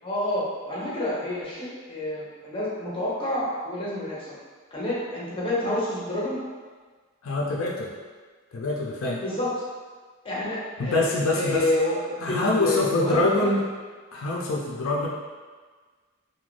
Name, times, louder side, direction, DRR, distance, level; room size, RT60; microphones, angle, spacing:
voice 1, 0.0-4.3 4.7-6.4 9.2-9.6 10.2-13.5, left 1 dB, 25° left, -7 dB, 0.6 m, -29 dB
voice 2, 7.2-7.9 8.5-9.2 10.8-11.6 12.2-13.6 14.1-15.1, left 2 dB, 80° left, -3 dB, 0.4 m, -24 dB
2.4 x 2.1 x 3.2 m, 1.5 s
head